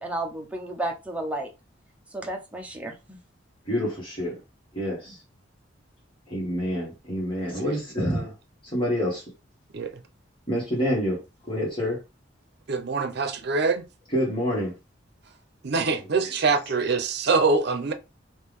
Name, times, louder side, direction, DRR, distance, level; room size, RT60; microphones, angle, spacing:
voice 1, 0.0-1.5 2.1-3.2, right 1 dB, 10° right, 0.6 m, -32 dB
voice 2, 3.6-4.4 4.7-5.2 6.3-8.3 8.6-9.2 10.5-11.2 11.5-12.0 14.1-14.7, equal, 25° left, 1.6 m, -27 dB
voice 3, 12.7-13.8 15.6-17.9, right 4 dB, 60° right, 0.6 m, -24 dB
3.4 x 2.6 x 3.5 m
head